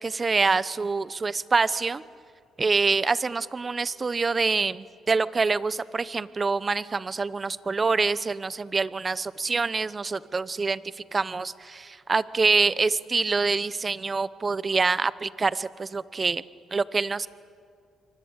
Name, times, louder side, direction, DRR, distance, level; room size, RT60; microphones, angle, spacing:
voice 1, 0.0-2.0 2.6-16.4 16.7-17.3, right 4 dB, 30° right, 17 dB, 0.9 m, -26 dB
28.0 x 24.0 x 8.8 m, 2.3 s
cardioid pair, 90°, 0 cm